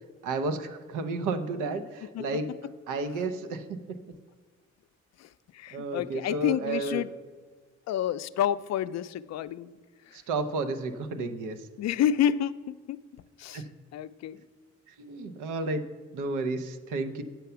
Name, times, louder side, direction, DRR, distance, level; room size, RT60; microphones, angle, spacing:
voice 1, 0.2-2.5 2.9-4.0 5.7-7.0 10.1-11.7 13.5-13.6 14.9-15.8 16.1-17.2, right 3 dB, 90° right, 9 dB, 0.8 m, -32 dB
voice 2, 5.2-7.1 7.9-9.7 10.1-10.2 11.8-13.6 13.9-14.4, left 10 dB, 60° left, 14 dB, 0.5 m, -29 dB
9.2 x 5.7 x 6.8 m, 1.4 s
cardioid pair, 90°, 30 cm